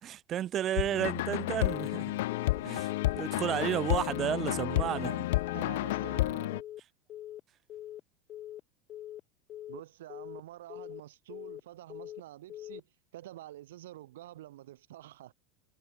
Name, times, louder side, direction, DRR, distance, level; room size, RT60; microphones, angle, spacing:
voice 1, 0.0-2.2 2.6-5.1, right 11 dB, 40° right, 2.8 m, -32 dB
sound 1, 0.8-6.6, left 18 dB, 80° left, 0.4 m, -31 dB
Telephone, 1.7-2.0 2.3-2.6 2.9-3.2 3.5-3.8 4.1-4.4 4.7-5.0 5.3-5.6 5.9-6.2 6.5-6.8 7.1-7.4 7.7-8.0 8.3-8.6 8.9-9.2 9.5-9.8 10.1-10.4 10.7-11.0 11.3-11.6 11.9-12.2 12.5-12.8, left 12 dB, 40° left, 3.0 m, -43 dB
voice 2, 4.7-5.3 5.5-6.6 9.7-12.9 13.1-15.3, right 14 dB, 85° right, 7.4 m, -47 dB
supercardioid pair, 115°, 0 cm